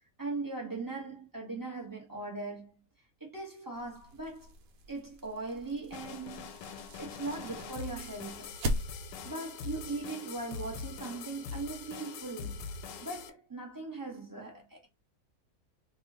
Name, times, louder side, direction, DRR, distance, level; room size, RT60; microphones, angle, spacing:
voice 1, 0.2-2.8 3.2-4.5 4.9-6.5 7.0-8.5 9.2-12.7 13.0-14.9, right 3 dB, 15° right, 0.7 m, -39 dB
sound 1, 3.7-9.3, right 1 dB, 85° right, 1.3 m, -40 dB
sound 2, 5.9-13.3, left 6 dB, 85° left, 1.2 m, -43 dB
3.0 x 2.4 x 3.8 m
omnidirectional pair, 1.9 m